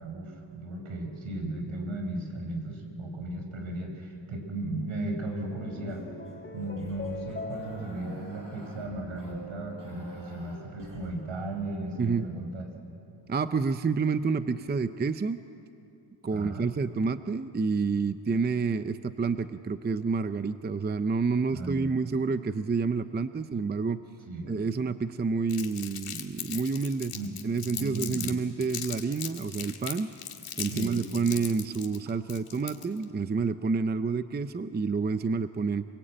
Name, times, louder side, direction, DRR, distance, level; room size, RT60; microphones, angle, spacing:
voice 1, 0.0-6.0 6.5-12.6 16.3-16.7 21.5-21.9 24.3-24.5 27.1-27.3 27.8-28.4 30.6-31.0 32.6-32.7, right 2 dB, 75° right, 3 dB, 5.5 m, -36 dB
sound 1, 5.2-9.8, left 4 dB, 25° left, 1.3 m, -44 dB
sound 2, 5.9-11.1, right 2 dB, 40° right, 6.2 m, -46 dB
voice 2, 12.0-12.3 13.3-15.4 16.2-24.0 24.5-27.1 27.4-30.1 30.6-35.9, right 4 dB, 20° right, 11 dB, 0.5 m, -29 dB
Crumpling crinkling, 25.5-28.3 28.6-33.0, left 9 dB, 85° left, 2.2 m, -38 dB
27.0 x 23.0 x 8.9 m, 2.7 s
wide cardioid pair, 145°, 49 cm